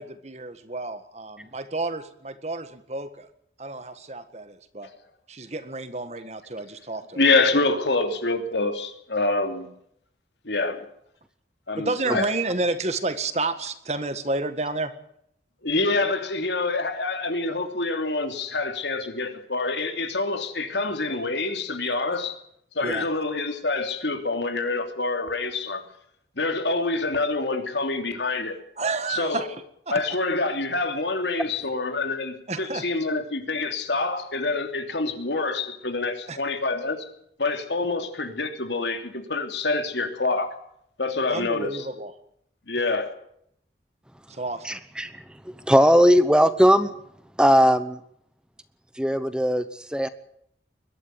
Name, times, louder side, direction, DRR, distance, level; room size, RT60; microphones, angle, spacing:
voice 1, 0.0-3.3 3.6-4.9 5.3-7.2 11.8-14.9 22.8-23.1 28.8-29.5 29.9-30.0 32.5-32.8 36.3-36.4 41.3-42.1 44.3-44.8, right 2 dB, 40° right, 1.7 m, -30 dB
voice 2, 7.2-9.7 10.4-10.8 11.7-12.3 15.6-22.4 22.7-25.8 26.4-28.6 29.1-29.5 29.9-37.1 37.4-40.5 41.0-41.9 42.7-43.1, left 3 dB, 85° left, 3.0 m, -26 dB
voice 3, 44.6-45.2 45.7-46.9 47.4-48.0 49.0-50.1, equal, 5° right, 0.8 m, -19 dB
22.0 x 12.5 x 9.6 m
head